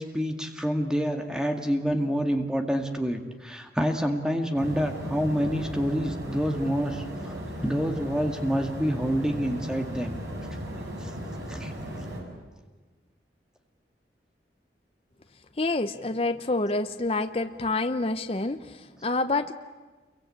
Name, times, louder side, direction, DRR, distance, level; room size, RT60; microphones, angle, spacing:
voice 1, 0.0-10.1 11.0-11.2 11.5-11.7, equal, 5° right, 4 dB, 2.1 m, -27 dB
sound 1, 4.6-12.2, equal, 90° right, 7.4 m, -36 dB
voice 2, 15.6-19.5, left 2 dB, 35° left, 8 dB, 0.8 m, -27 dB
28.5 x 23.0 x 8.8 m, 1.3 s
head